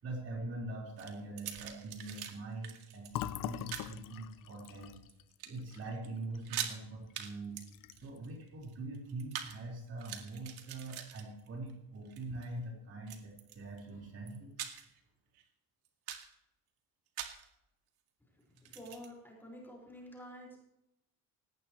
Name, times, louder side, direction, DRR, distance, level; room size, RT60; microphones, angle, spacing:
voice 1, 0.0-5.0 5.4-7.6 8.0-14.5, right 2 dB, 40° right, -1 dB, 4.6 m, -43 dB
sound 1, 1.0-2.3 2.6-3.1 3.7-3.9 4.6-5.1 5.4-5.8 6.0-6.1 6.4-6.8 7.2-7.3 7.6-9.6 9.9-11.7 12.1-12.5 13.1-13.8 14.3-15.0 15.4-15.5 15.9-16.3 17.2-17.5 18.6-19.1, right 10 dB, 80° right, 2.1 m, -43 dB
Fill (with liquid), 3.1-6.8 7.1-7.3 7.6-8.2, left 13 dB, 60° left, 0.8 m, -43 dB
voice 2, 18.3-20.6, equal, 5° left, -3 dB, 5.2 m, -50 dB
18.5 x 17.0 x 3.2 m, 0.86 s
cardioid pair, 160°, 37 cm